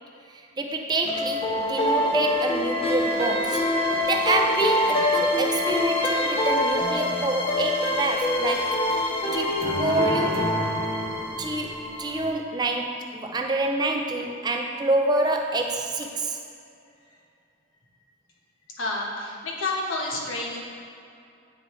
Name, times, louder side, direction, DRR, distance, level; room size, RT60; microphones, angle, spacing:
voice 1, 0.3-3.6 4.0-8.8 9.3-10.4 11.4-16.4, right 2 dB, 20° right, 2 dB, 0.4 m, -27 dB
sound 1, 1.1-12.3, left 1 dB, 25° left, 0.9 m, -25 dB
voice 2, 18.8-20.6, left 2 dB, 70° left, -3 dB, 1.2 m, -29 dB
9.5 x 4.6 x 3.1 m, 2.5 s
head